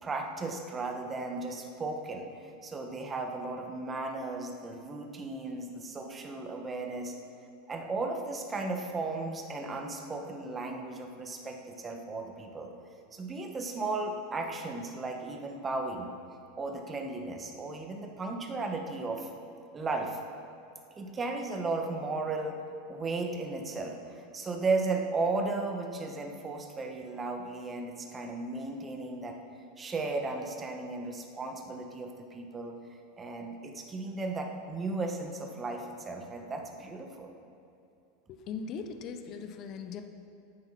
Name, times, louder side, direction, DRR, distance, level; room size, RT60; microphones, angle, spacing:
voice 1, 0.0-7.1 7.7-12.7 13.1-16.1 16.6-19.3 19.7-20.2 21.0-22.6 22.9-29.4 29.8-32.8 33.2-37.3, right 3 dB, 20° right, 3 dB, 1.6 m, -35 dB
voice 2, 38.3-40.1, left 6 dB, 45° left, 8 dB, 0.9 m, -39 dB
11.5 x 8.9 x 5.9 m, 2.6 s
hypercardioid pair, 95°, 0 cm